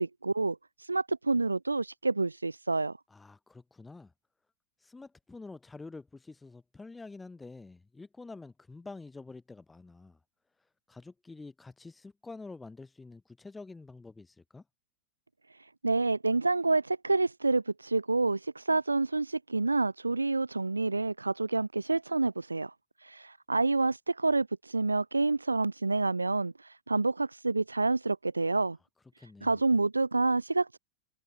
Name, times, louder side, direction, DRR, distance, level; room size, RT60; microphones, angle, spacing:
voice 1, 0.0-3.0 15.5-22.7 23.0-28.8 29.2-30.8, right 3 dB, 80° right, 0.7 m, -28 dB
voice 2, 3.1-4.1 4.8-10.2 10.9-14.6 29.2-29.6, left 3 dB, 10° left, 1.4 m, -47 dB
figure-of-eight pair, 90°, 0 cm